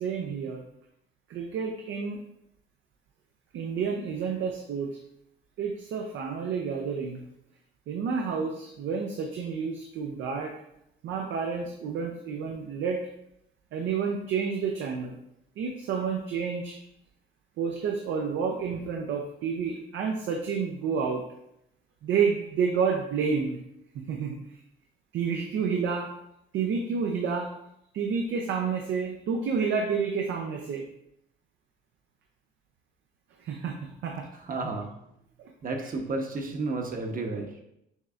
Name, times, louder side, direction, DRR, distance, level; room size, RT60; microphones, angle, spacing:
voice 1, 0.0-0.6 1.3-2.2 3.5-5.0 5.6-7.2 7.9-10.5 11.0-13.0 13.7-15.2 15.6-16.8 17.6-21.2 22.0-23.6 23.9-24.4 25.1-26.1 26.5-27.5 27.9-30.8 33.4-34.3 35.4-35.5, right 6 dB, 80° right, 1 dB, 0.6 m, -29 dB
voice 2, 34.4-34.9 35.6-37.5, right 3 dB, 45° right, 3 dB, 0.9 m, -32 dB
6.3 x 3.2 x 2.4 m, 0.80 s
cardioid pair, 90°, 20 cm